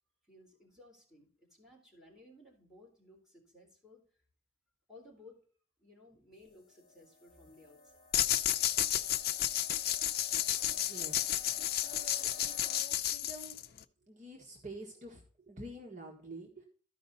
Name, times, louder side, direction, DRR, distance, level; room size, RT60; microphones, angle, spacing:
voice 1, 0.3-4.0 4.9-5.4 5.8-8.1, left 2 dB, 5° right, -2 dB, 3.7 m, -58 dB
sound 1, 6.3-12.8, left 1 dB, 20° left, 3.7 m, -56 dB
sound 2, 8.1-13.8, left 12 dB, 55° left, 0.5 m, -32 dB
voice 2, 10.7-11.5 11.8-13.6 14.0-16.7, right 1 dB, 45° right, 1 dB, 1.6 m, -49 dB
13.5 x 5.4 x 4.0 m, 0.42 s
head